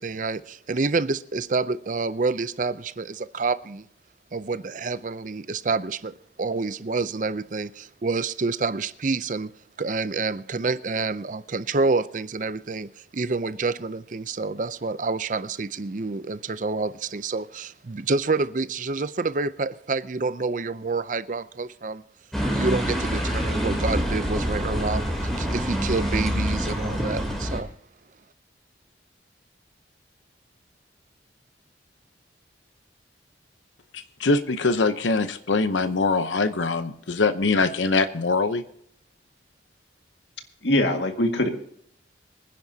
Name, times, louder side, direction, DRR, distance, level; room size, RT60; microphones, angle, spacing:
voice 1, 0.0-3.8 4.3-9.5 9.8-22.0 22.5-27.7, right 3 dB, 45° right, 0.5 m, -28 dB
sound 1, 22.3-27.6, equal, ahead, 3.1 m, -26 dB
voice 2, 33.9-38.6, left 3 dB, 90° left, 0.8 m, -23 dB
voice 3, 40.6-41.5, left 1 dB, 75° left, 1.9 m, -22 dB
24.5 x 10.5 x 2.8 m
head